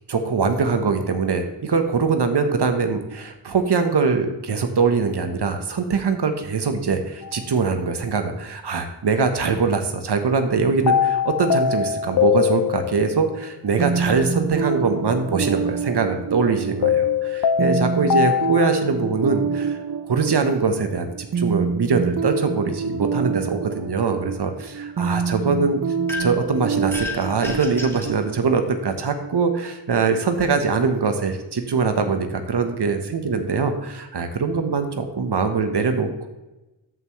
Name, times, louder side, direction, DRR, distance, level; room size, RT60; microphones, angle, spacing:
voice 1, 0.1-19.8 20.1-25.8 26.2-36.3, right 4 dB, 65° right, 7 dB, 1.1 m, -22 dB
sound 1, 7.2-7.4 10.9-13.2 16.8-18.8, left 8 dB, 55° left, 0.5 m, -21 dB
sound 2, 13.8-29.4, right 5 dB, 45° right, 0.7 m, -27 dB
sound 3, 26.1-26.5 26.9-28.2, left 3 dB, 5° left, 1.7 m, -32 dB
13.0 x 5.8 x 3.2 m, 1.0 s
wide cardioid pair, 75°, 44 cm